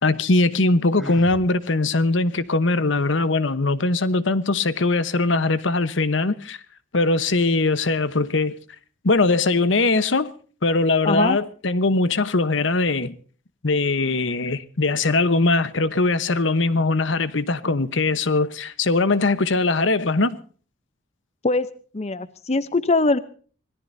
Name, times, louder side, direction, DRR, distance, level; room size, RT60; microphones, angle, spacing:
voice 1, 0.0-6.6 6.9-8.6 9.0-10.3 10.6-13.1 13.6-20.4, left 3 dB, 65° left, 1.0 m, -21 dB
Sigh, 1.0-1.5, left 1 dB, ahead, 1.6 m, -36 dB
voice 2, 11.0-11.4 21.4-21.7 21.9-23.2, left 3 dB, 30° left, 0.7 m, -21 dB
25.5 x 18.0 x 2.7 m
head